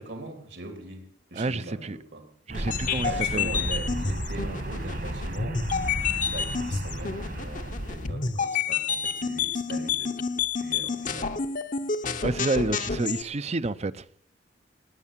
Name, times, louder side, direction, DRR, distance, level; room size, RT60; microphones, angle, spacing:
voice 1, 0.0-2.3 3.0-5.6 6.1-10.2 10.6-11.3, right 2 dB, 80° right, 3.2 m, -41 dB
voice 2, 1.4-2.0 2.5-3.5 12.2-14.0, right 3 dB, 40° right, 0.6 m, -29 dB
sound 1, 2.5-13.2, left 6 dB, 50° left, 0.9 m, -29 dB
sound 2, 2.5-8.1, right 1 dB, 60° right, 2.0 m, -33 dB
19.0 x 9.6 x 7.4 m
head